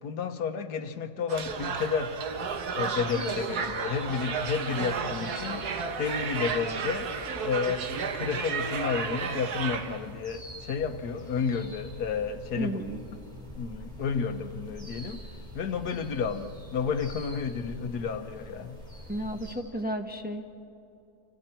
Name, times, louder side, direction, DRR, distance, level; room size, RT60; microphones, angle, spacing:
voice 1, 0.0-2.1 2.7-5.6 6.0-7.1 7.4-12.8 13.6-15.2 15.5-18.8, left 6 dB, 85° left, 8 dB, 1.6 m, -31 dB
sound 1, 1.3-19.6, equal, 25° right, 5.0 m, -46 dB
sound 2, 1.3-10.1, right 6 dB, 85° right, 1.7 m, -33 dB
voice 2, 12.5-13.0 19.1-20.6, equal, 5° right, 3 dB, 1.0 m, -33 dB
29.5 x 26.5 x 4.4 m, 2.8 s
omnidirectional pair, 1.6 m